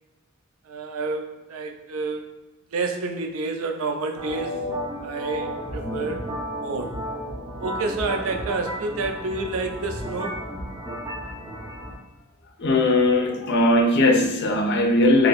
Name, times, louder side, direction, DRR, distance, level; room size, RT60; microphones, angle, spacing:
voice 1, 0.6-2.3 2.7-4.6 5.0-6.3 6.6-7.0 7.6-10.4, right 3 dB, 85° right, 5 dB, 0.5 m, -29 dB
sound 1, 4.2-12.0, equal, 15° right, 0.6 m, -33 dB
voice 2, 12.6-15.3, left 1 dB, 55° left, 3 dB, 0.6 m, -19 dB
2.9 x 2.6 x 3.9 m, 1.1 s
head